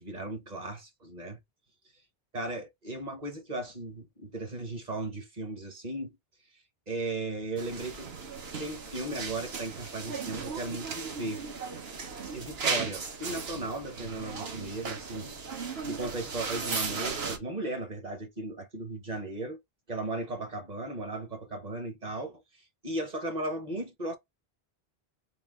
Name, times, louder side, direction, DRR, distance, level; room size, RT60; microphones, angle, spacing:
voice 1, 0.0-1.4 2.3-6.1 6.9-8.1 8.6-11.4 12.3-15.3 15.9-19.6 19.9-22.4 22.8-24.2, right 2 dB, 45° right, 1.0 m, -36 dB
sound 1, 7.6-17.4, right 5 dB, 80° right, 1.2 m, -36 dB
3.7 x 2.5 x 3.6 m
omnidirectional pair, 1.0 m